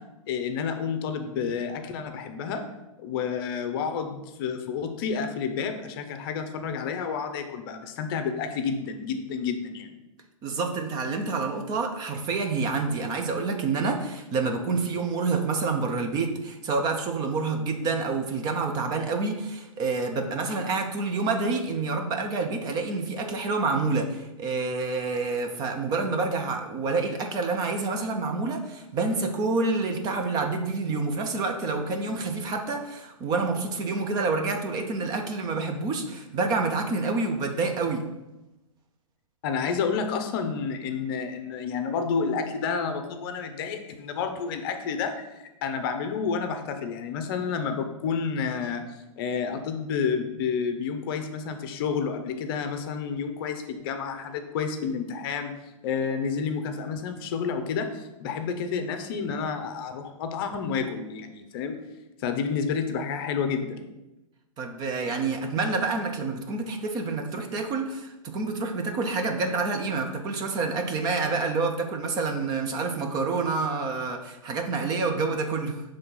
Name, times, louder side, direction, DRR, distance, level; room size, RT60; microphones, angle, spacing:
voice 1, 0.3-2.6 3.0-9.9 39.4-45.3 45.6-48.8 49.2-55.5 55.8-61.8 62.2-63.8, left 6 dB, 45° left, 7 dB, 0.7 m, -30 dB
voice 2, 10.4-38.0 64.6-75.8, right 3 dB, 25° right, 4 dB, 0.6 m, -28 dB
5.7 x 3.4 x 5.4 m, 0.97 s
hypercardioid pair, 140°, 17 cm